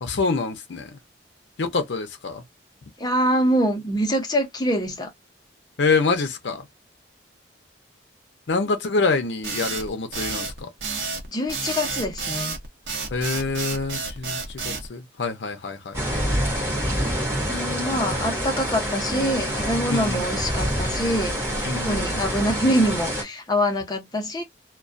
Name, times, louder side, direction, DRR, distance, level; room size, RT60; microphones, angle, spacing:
voice 1, 0.0-0.9 1.6-2.4 5.8-6.7 8.5-10.7 13.1-14.4 14.6-16.3 19.9-20.2 21.6-22.1, left 4 dB, 70° left, 0.6 m, -26 dB
voice 2, 3.0-5.1 11.3-12.6 17.5-21.4 21.8-24.4, equal, 20° left, 0.6 m, -24 dB
sound 1, 9.4-14.9, right 4 dB, 80° right, 0.8 m, -30 dB
sound 2, 15.9-23.2, equal, 15° right, 1.0 m, -26 dB
2.2 x 2.2 x 2.5 m
head